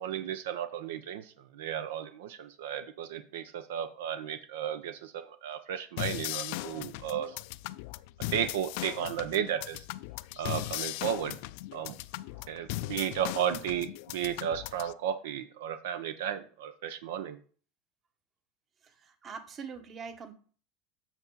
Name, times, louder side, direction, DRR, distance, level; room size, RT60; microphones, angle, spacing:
voice 1, 0.0-7.4 8.3-9.8 10.4-11.4 11.7-11.9 12.5-17.4, right 9 dB, 85° right, 11 dB, 0.7 m, -34 dB
sound 1, 6.0-14.9, left 18 dB, 70° left, 0.4 m, -38 dB
voice 2, 19.0-20.3, right 5 dB, 35° right, 8 dB, 1.3 m, -43 dB
8.1 x 6.0 x 4.0 m, 0.42 s
supercardioid pair, 115°, 0 cm